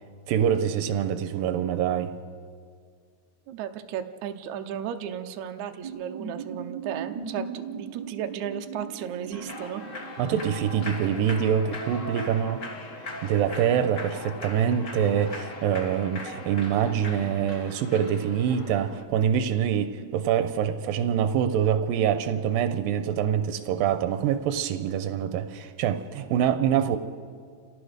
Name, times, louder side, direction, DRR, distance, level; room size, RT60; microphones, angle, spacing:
voice 1, 0.3-2.1 10.2-12.6 13.2-27.0, right 9 dB, 90° right, 9 dB, 2.5 m, -25 dB
voice 2, 3.5-9.8, right 9 dB, 70° right, 6 dB, 1.9 m, -34 dB
sound 1, 5.8-11.5, right 6 dB, 45° right, 1.4 m, -39 dB
Human voice / Clapping / Cheering, 9.3-19.0, left 2 dB, 65° left, 0.7 m, -39 dB
29.5 x 17.5 x 5.0 m, 2.1 s
omnidirectional pair, 4.0 m